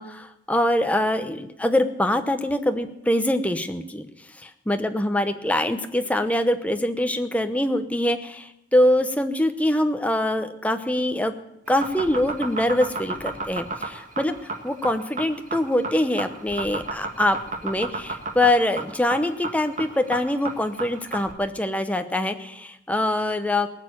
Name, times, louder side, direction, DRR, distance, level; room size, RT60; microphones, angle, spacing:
voice 1, 0.0-4.1 4.4-11.3 11.7-17.4 17.6-23.7, left 1 dB, 10° left, 7 dB, 0.9 m, -24 dB
sound 1, 11.7-21.3, right 3 dB, 45° right, 1.7 m, -31 dB
19.0 x 6.7 x 8.7 m, 0.83 s
head